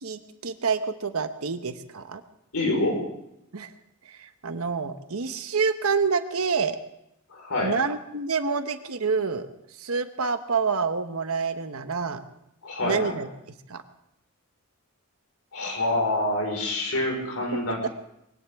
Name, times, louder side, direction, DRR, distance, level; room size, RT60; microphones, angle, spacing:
voice 1, 0.0-2.2 3.5-3.7 4.0-6.8 7.6-9.5 9.8-12.2 12.8-13.3 13.7-13.8 17.5-17.6, right 5 dB, 70° right, 9 dB, 1.1 m, -27 dB
voice 2, 2.5-3.0 7.3-7.7 12.6-13.2 15.5-17.9, left 2 dB, 75° left, 1 dB, 5.0 m, -26 dB
21.5 x 17.0 x 3.6 m, 0.82 s
head